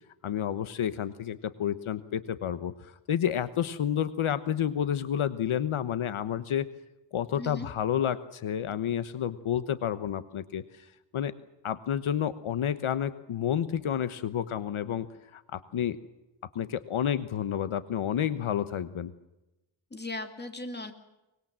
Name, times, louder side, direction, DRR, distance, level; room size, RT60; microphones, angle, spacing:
voice 1, 0.2-6.7 7.1-10.8 11.1-11.3 11.6-15.1 15.3-16.0 16.5-19.1, left 9 dB, 75° left, 13 dB, 1.2 m, -30 dB
voice 2, 7.3-7.7 19.9-20.9, left 2 dB, 20° left, 6 dB, 2.5 m, -37 dB
24.5 x 21.0 x 7.5 m, 0.96 s
wide cardioid pair, 165°, 50 cm